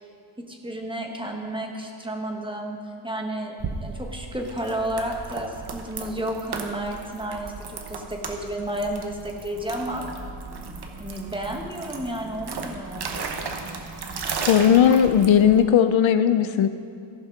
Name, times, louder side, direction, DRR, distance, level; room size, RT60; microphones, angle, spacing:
voice 1, 0.5-3.6 3.8-10.0 11.0-13.1, right 1 dB, 10° right, 1 dB, 1.1 m, -31 dB
sound 1, 3.6-15.6, right 4 dB, 55° right, 1.0 m, -35 dB
voice 2, 14.5-16.7, left 8 dB, 80° left, 11 dB, 0.6 m, -17 dB
14.5 x 5.7 x 5.9 m, 2.5 s
wide cardioid pair, 145°, 45 cm